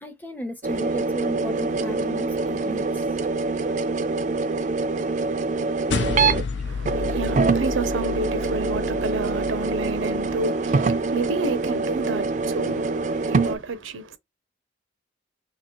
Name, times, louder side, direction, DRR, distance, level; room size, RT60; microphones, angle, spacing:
voice 1, 0.0-3.1, left 1 dB, 10° left, 0.6 m, -35 dB
sound 1, 0.6-6.5 6.9-13.6, right 3 dB, 40° right, 0.3 m, -25 dB
sound 2, 5.9-10.5, left 4 dB, 65° left, 0.5 m, -31 dB
voice 2, 6.6-14.2, right 3 dB, 85° right, 0.6 m, -30 dB
2.9 x 2.7 x 4.3 m
head